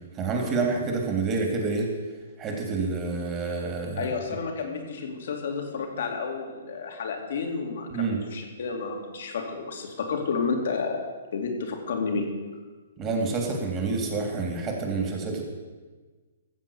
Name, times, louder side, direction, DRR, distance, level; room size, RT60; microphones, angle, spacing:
voice 1, 0.2-1.9 2.4-4.1 7.9-8.2 13.0-15.4, right 4 dB, 25° right, 2 dB, 3.1 m, -28 dB
voice 2, 4.0-11.1 11.3-12.3, left 5 dB, 60° left, 3 dB, 2.5 m, -31 dB
15.0 x 7.6 x 7.2 m, 1.4 s
figure-of-eight pair, 125°, 0 cm